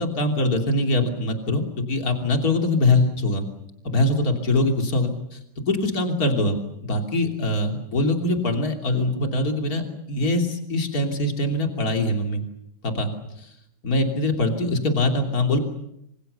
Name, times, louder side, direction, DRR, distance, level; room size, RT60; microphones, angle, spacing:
voice 1, 0.0-1.6 1.9-3.5 3.8-6.6 6.8-9.8 10.1-12.4 12.8-13.1 13.4-13.5 13.8-15.6, left 2 dB, 50° left, 3 dB, 3.6 m, -23 dB
27.0 x 26.5 x 6.9 m, 0.79 s
omnidirectional pair, 2.1 m